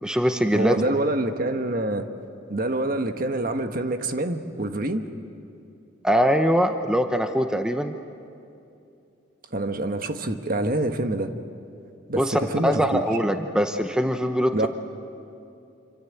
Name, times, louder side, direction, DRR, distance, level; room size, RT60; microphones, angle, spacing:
voice 1, 0.0-0.8 6.0-7.9 12.2-14.7, equal, 5° right, 6 dB, 0.8 m, -22 dB
voice 2, 0.5-2.1 2.5-5.1 9.5-11.3 12.1-13.0 14.5-14.7, right 1 dB, 45° right, 7 dB, 1.4 m, -26 dB
27.0 x 25.5 x 8.4 m, 2.7 s
head